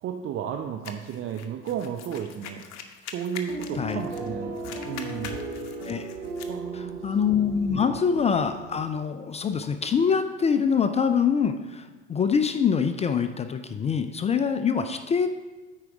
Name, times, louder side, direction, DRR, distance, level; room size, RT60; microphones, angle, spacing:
voice 1, 0.0-2.6 3.0-5.5 6.5-7.0 7.7-8.0, right 8 dB, 35° right, 4 dB, 0.6 m, -33 dB
sound 1, 0.8-4.3 4.5-6.6, left 6 dB, 50° left, 0.9 m, -43 dB
sound 2, 3.5-8.8, right 2 dB, 75° right, 1.5 m, -36 dB
voice 2, 6.7-15.3, left 6 dB, 20° left, 9 dB, 0.4 m, -25 dB
8.9 x 4.7 x 4.7 m, 1.2 s
hypercardioid pair, 75°, 34 cm